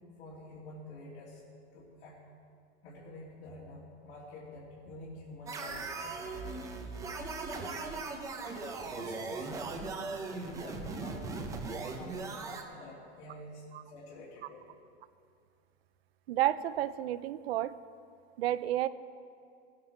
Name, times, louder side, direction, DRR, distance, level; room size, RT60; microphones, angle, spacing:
voice 1, 0.2-1.4 1.7-2.2 2.8-6.7 7.5-7.9 8.4-9.8 10.3-11.4 11.8-14.7, left 2 dB, 65° left, -8 dB, 3.0 m, -48 dB
sound 1, 5.5-12.6, right 3 dB, 10° right, 0.5 m, -39 dB
voice 2, 16.3-17.7 18.4-18.9, right 13 dB, 60° right, 15 dB, 0.5 m, -30 dB
18.0 x 9.6 x 4.4 m, 2.4 s
supercardioid pair, 160°, 36 cm